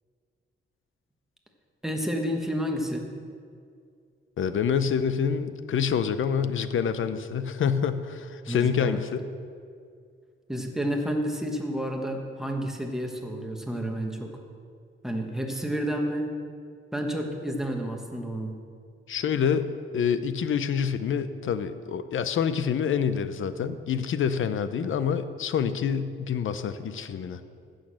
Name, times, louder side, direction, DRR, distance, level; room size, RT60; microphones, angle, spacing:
voice 1, 1.8-3.1 8.5-9.0 10.5-14.3 15.0-16.3 16.9-18.5, equal, ahead, 2 dB, 1.2 m, -30 dB
voice 2, 4.4-9.2 19.1-27.4, left 7 dB, 70° left, 12 dB, 0.7 m, -27 dB
15.0 x 6.4 x 6.4 m, 2.3 s
wide cardioid pair, 160°, 21 cm